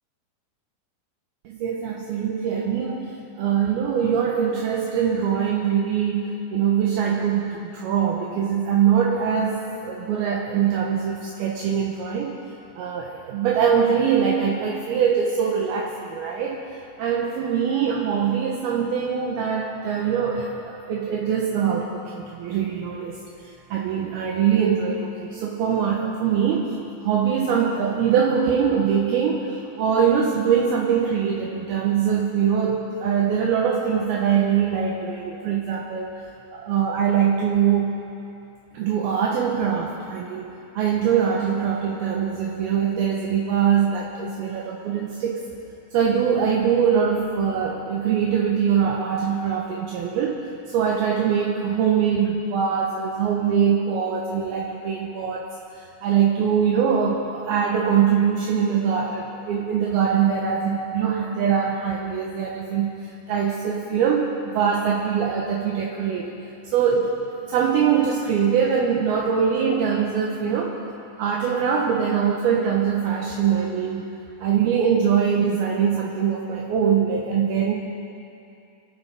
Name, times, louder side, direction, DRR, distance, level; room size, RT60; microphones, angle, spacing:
voice 1, 1.5-12.4 12.8-16.6 17.0-26.8 27.0-36.1 36.5-38.0 38.7-45.5 45.9-55.5 55.8-66.3 66.6-67.2 67.5-70.8 71.2-74.1 74.4-77.7, right 7 dB, 75° right, -2 dB, 2.7 m, -23 dB
26.0 x 12.5 x 3.5 m, 2.6 s
omnidirectional pair, 4.9 m